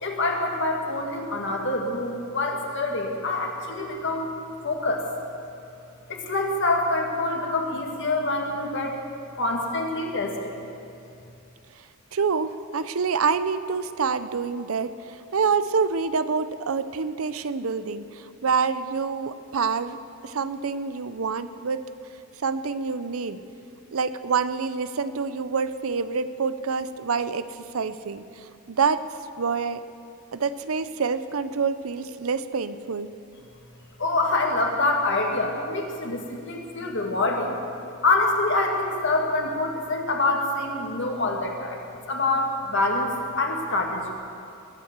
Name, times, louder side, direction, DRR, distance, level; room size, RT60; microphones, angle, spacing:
voice 1, 0.0-4.3 4.6-5.0 6.1-9.0 9.4-10.6 34.0-37.6 38.0-41.8 42.1-44.0, left 2 dB, 60° left, 1 dB, 2.1 m, -26 dB
voice 2, 12.1-20.0 20.2-21.8 22.4-23.4 23.9-27.5 27.7-29.1 29.4-29.8 30.3-33.1, right 5 dB, 80° right, 13 dB, 0.6 m, -27 dB
21.0 x 8.5 x 7.4 m, 2.6 s
head